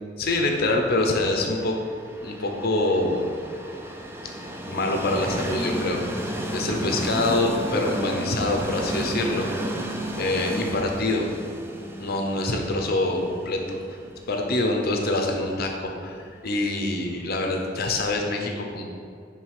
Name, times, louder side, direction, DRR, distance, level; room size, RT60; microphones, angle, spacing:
voice 1, 0.2-1.8 2.2-3.3 4.7-9.5 10.2-11.3 12.0-13.8 14.3-18.8, left 2 dB, 55° left, 2 dB, 0.7 m, -25 dB
Train, 1.4-17.2, right 1 dB, 15° right, 0.4 m, -33 dB
6.1 x 3.4 x 4.7 m, 2.3 s
head